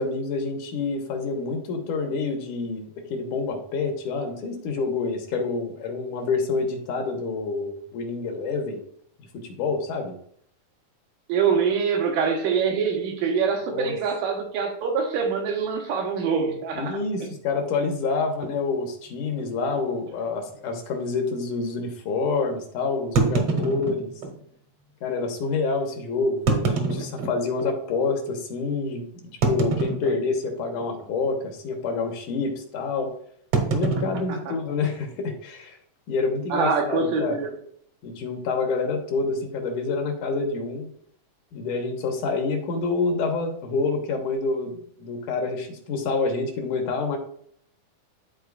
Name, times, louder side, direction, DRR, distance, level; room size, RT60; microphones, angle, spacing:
voice 1, 0.0-8.8 9.3-10.2 13.7-14.0 16.8-24.1 25.0-29.0 29.5-33.1 33.7-35.8 36.1-37.4 38.0-40.9 41.5-47.2, left 4 dB, 75° left, 3 dB, 2.4 m, -27 dB
voice 2, 11.3-16.9 36.5-37.5, right 6 dB, 85° right, 2 dB, 2.7 m, -24 dB
sound 1, 18.4-18.6 19.3-19.5 19.8-19.9 20.5-20.6 23.1-24.4 25.2-25.3 26.3-27.7 28.3-28.4 29.4-30.5 30.8-31.1 31.4-31.7 33.5-35.1, right 4 dB, 65° right, 1.6 m, -26 dB
11.5 x 4.3 x 2.4 m, 0.64 s
omnidirectional pair, 3.7 m